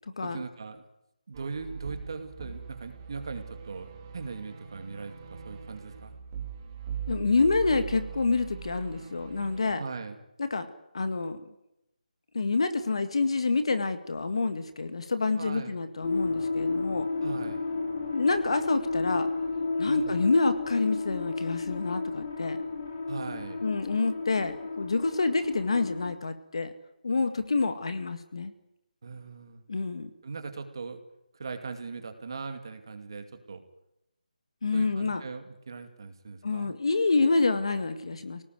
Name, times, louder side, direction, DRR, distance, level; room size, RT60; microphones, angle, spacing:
voice 1, 0.2-0.8 1.3-6.2 9.8-10.2 15.4-15.8 17.2-17.6 19.8-20.3 23.1-23.6 29.0-29.6 30.2-31.0 31.4-33.6 34.7-36.7, right 4 dB, 35° right, 7 dB, 2.4 m, -39 dB
sound 1, 1.3-9.7, right 7 dB, 15° right, 2.0 m, -41 dB
voice 2, 7.1-9.8 10.4-10.7 10.9-11.4 12.3-17.1 18.1-19.3 19.8-22.6 23.6-26.7 27.0-28.5 29.7-30.1 34.6-35.2 36.4-38.4, left 3 dB, 45° left, 9 dB, 2.0 m, -27 dB
sound 2, 16.0-26.1, left 3 dB, 25° left, 2.8 m, -32 dB
28.0 x 18.5 x 9.5 m, 0.88 s
figure-of-eight pair, 180°, 4 cm